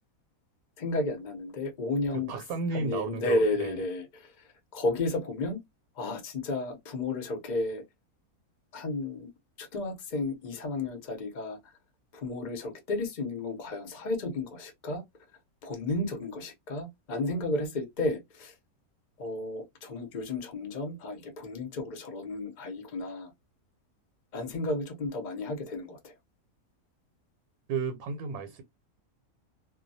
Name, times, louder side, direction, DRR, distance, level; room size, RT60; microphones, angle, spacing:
voice 1, 0.8-2.4 2.7-4.2 4.7-5.6 6.0-7.8 8.7-9.3 9.6-11.6 12.1-15.0 15.6-18.5 19.2-23.3 24.3-26.1, left 2 dB, 45° left, 0.6 m, -32 dB
voice 2, 2.1-3.8 27.7-28.6, right 5 dB, 85° right, 1.1 m, -33 dB
2.2 x 2.2 x 2.6 m
omnidirectional pair, 1.5 m